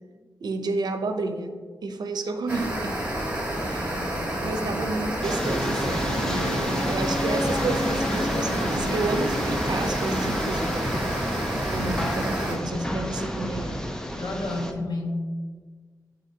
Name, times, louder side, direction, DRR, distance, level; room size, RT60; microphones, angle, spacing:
voice 1, 0.4-3.0 3.7-4.0 4.4-11.1 11.7-13.9, right 3 dB, 80° right, 6 dB, 0.6 m, -31 dB
sound 1, 2.5-12.6, right 1 dB, 15° right, 1.7 m, -30 dB
voice 2, 3.6-4.7 12.2-12.9 14.1-15.2, left 2 dB, 90° left, -1 dB, 1.3 m, -33 dB
sound 2, 5.2-14.7, equal, 10° left, 0.6 m, -30 dB
Wind instrument woodwind instrument, 5.4-9.8, left 1 dB, 55° left, 1.2 m, -34 dB
12.0 x 4.0 x 2.8 m, 1.5 s
wide cardioid pair, 100°, 7 cm